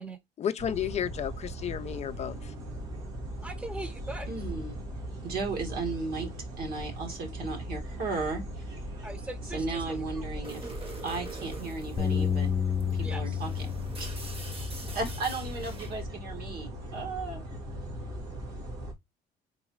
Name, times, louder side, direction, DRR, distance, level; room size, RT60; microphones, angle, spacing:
voice 1, 0.4-2.5, left 9 dB, 40° left, 0.4 m, -32 dB
sound 1, 0.6-18.9, right 1 dB, 85° right, 1.9 m, -39 dB
voice 2, 3.4-4.3 9.0-10.7 13.0-13.4, right 2 dB, 5° right, 0.8 m, -41 dB
voice 3, 4.3-4.8 5.2-6.3 6.6-8.7 9.5-10.7 11.0-12.5 12.9-14.1 14.9-17.4, right 3 dB, 65° right, 1.8 m, -35 dB
sound 2, 10.4-16.0, right 3 dB, 35° right, 1.2 m, -45 dB
Bass guitar, 12.0-16.4 17.0-18.2, left 7 dB, 25° left, 0.9 m, -33 dB
4.0 x 3.7 x 2.9 m
cardioid pair, 110°, 17 cm